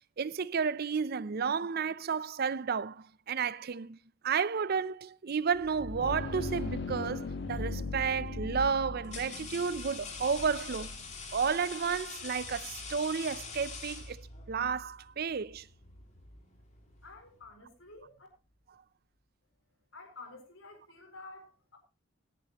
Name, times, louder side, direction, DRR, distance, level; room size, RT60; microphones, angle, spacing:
voice 1, 0.2-4.0 4.2-11.0 11.3-14.2 14.5-15.7, right 6 dB, 50° right, 0.5 m, -32 dB
sound 1, 5.6-17.2, left 3 dB, 60° left, 1.5 m, -41 dB
sound 2, 7.5-7.8 8.6-14.6, left 5 dB, 35° left, 2.4 m, -44 dB
voice 2, 17.0-18.3 19.9-21.8, left 3 dB, 90° left, 4.2 m, -50 dB
17.5 x 10.5 x 2.9 m
head